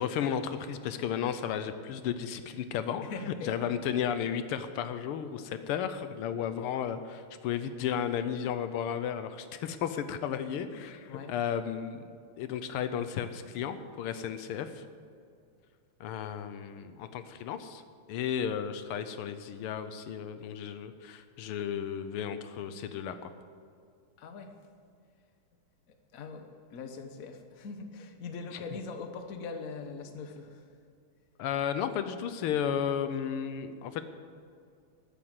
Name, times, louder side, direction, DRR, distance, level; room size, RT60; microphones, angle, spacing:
voice 1, 0.0-3.0 3.4-12.0 12.4-14.8 16.0-17.8 18.1-23.3 28.5-28.6 31.4-34.0, left 8 dB, 80° left, 10 dB, 1.6 m, -33 dB
voice 2, 3.0-3.5 11.1-11.3 24.2-24.5 26.1-30.7, left 4 dB, 50° left, 6 dB, 1.3 m, -41 dB
13.5 x 8.7 x 8.0 m, 2.3 s
omnidirectional pair, 2.4 m